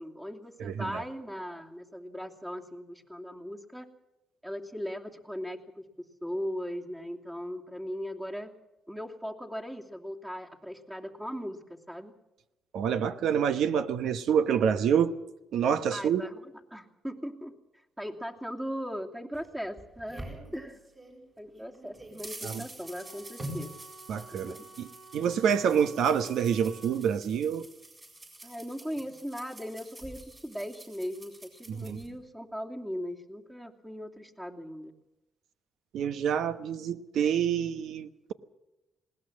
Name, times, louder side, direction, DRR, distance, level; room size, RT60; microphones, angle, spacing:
voice 1, 0.0-3.9 4.4-8.5 8.9-12.1 15.9-17.5 18.0-20.8 21.4-23.7 24.3-24.7 28.4-34.9, equal, 10° right, 2.8 m, -39 dB
voice 2, 0.6-1.0 12.7-15.1 15.5-16.2 22.4-22.6 24.1-24.9 25.1-27.7 31.7-32.0 35.9-38.3, right 8 dB, 75° right, 1.1 m, -27 dB
sound 1, 19.3-21.2 21.6-32.1, right 1 dB, 25° right, 7.9 m, -46 dB
sound 2, 22.8-27.0, right 3 dB, 45° right, 4.9 m, -51 dB
20.5 x 18.5 x 7.4 m
cardioid pair, 90°, 0 cm